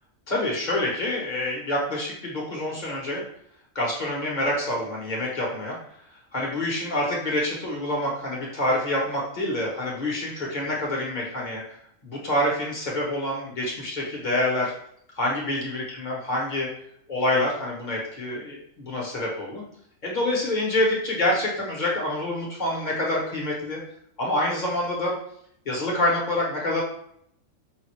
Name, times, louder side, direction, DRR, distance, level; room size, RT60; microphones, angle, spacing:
voice 1, 0.3-3.2 3.7-5.8 6.3-11.8 12.0-14.7 15.1-16.7 17.1-19.6 20.0-23.8 24.2-25.1 25.6-26.8, left 1 dB, 35° left, -3 dB, 1.2 m, -27 dB
5.6 x 2.5 x 3.1 m, 0.69 s
omnidirectional pair, 1.4 m